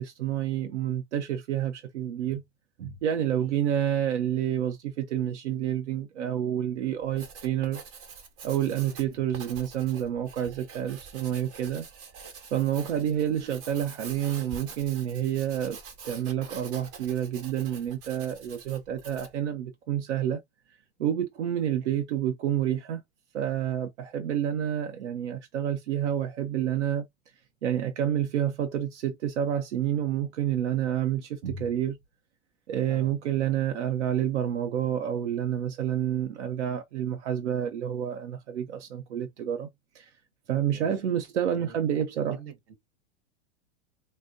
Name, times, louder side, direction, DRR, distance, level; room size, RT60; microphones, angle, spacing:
voice 1, 0.0-2.4 2.8-7.8 8.4-11.9 12.5-15.8 16.0-20.4 21.0-23.0 23.3-27.0 27.6-32.0 32.7-39.7 39.9-40.1 40.5-42.4, right 10 dB, 90° right, 0.7 m, -29 dB
Writing, 7.0-19.4, right 6 dB, 45° right, 1.3 m, -46 dB
voice 2, 40.7-41.1 41.5-42.7, right 7 dB, 60° right, 1.2 m, -48 dB
4.2 x 2.1 x 2.5 m
hypercardioid pair, 125°, 33 cm